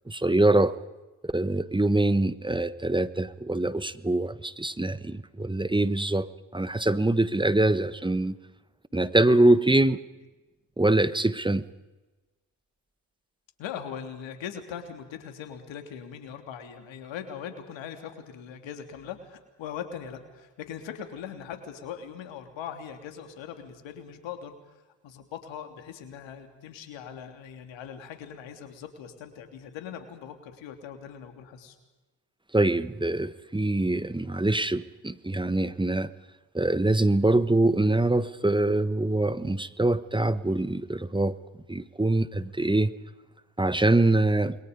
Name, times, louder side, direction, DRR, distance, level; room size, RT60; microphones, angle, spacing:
voice 1, 0.1-0.7 1.2-8.4 8.9-10.0 10.8-11.6 32.5-36.1 36.5-41.4 41.7-42.9 43.6-44.6, right 2 dB, 10° right, 14 dB, 1.2 m, -24 dB
voice 2, 13.6-24.7 25.0-31.8, left 8 dB, 75° left, 6 dB, 3.4 m, -40 dB
29.5 x 22.5 x 5.3 m, 1.1 s
hypercardioid pair, 55°, 46 cm